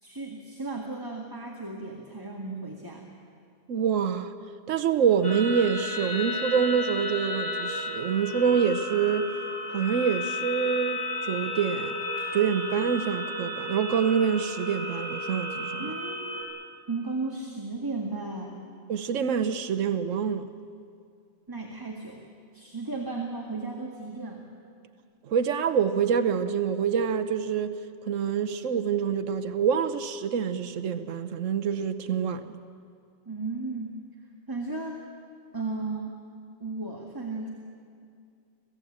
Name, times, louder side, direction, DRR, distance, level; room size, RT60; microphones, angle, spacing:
voice 1, 0.0-3.0 15.8-16.4 16.9-18.6 21.5-22.2 22.5-24.5 33.3-33.9 34.5-35.0 35.5-36.2 36.6-37.5, right 3 dB, 15° right, 1.9 m, -35 dB
voice 2, 3.7-4.3 4.7-9.3 9.7-12.0 12.3-16.0 18.9-20.5 25.3-27.8 28.1-32.5, right 7 dB, 90° right, 1.2 m, -26 dB
sound 1, 5.2-16.4, left 1 dB, 70° left, 4.8 m, -33 dB
27.0 x 17.5 x 8.6 m
omnidirectional pair, 1.3 m